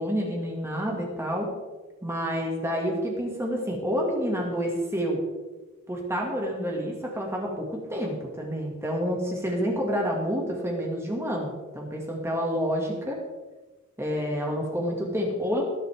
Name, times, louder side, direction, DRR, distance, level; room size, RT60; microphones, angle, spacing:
voice 1, 0.0-1.5 2.0-5.2 5.9-13.2 14.0-15.6, equal, 15° right, -1 dB, 2.0 m, -28 dB
20.5 x 8.0 x 3.5 m, 1.2 s
head